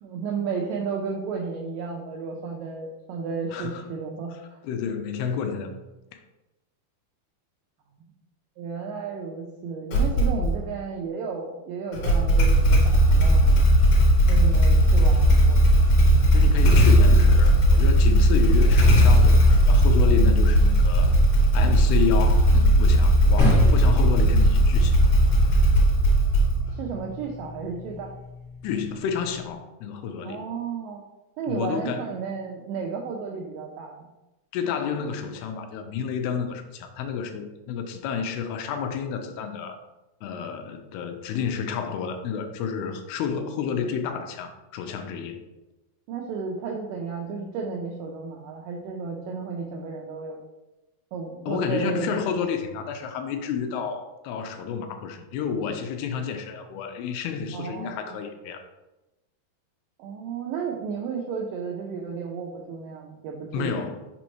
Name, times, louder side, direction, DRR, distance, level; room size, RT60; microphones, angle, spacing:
voice 1, 0.0-4.3 8.6-13.6 14.3-15.6 26.7-28.1 30.2-31.0 31.4-34.1 46.1-50.4 51.1-52.2 57.5-58.2 60.0-63.9, right 5 dB, 90° right, 0 dB, 1.9 m, -33 dB
voice 2, 3.5-3.8 4.6-5.7 6.1-6.2 16.3-21.1 21.5-25.0 28.6-30.4 31.5-32.1 34.5-39.8 40.2-45.4 51.5-58.6 63.5-64.1, left 7 dB, 90° left, 6 dB, 2.6 m, -30 dB
Motorcycle / Engine starting, 9.9-10.6 11.9-26.8, equal, 70° left, 1.9 m, -17 dB
sound 1, 23.4-29.5, left 2 dB, 55° left, 1.1 m, -31 dB
6.3 x 5.1 x 3.0 m, 1.0 s
omnidirectional pair, 4.6 m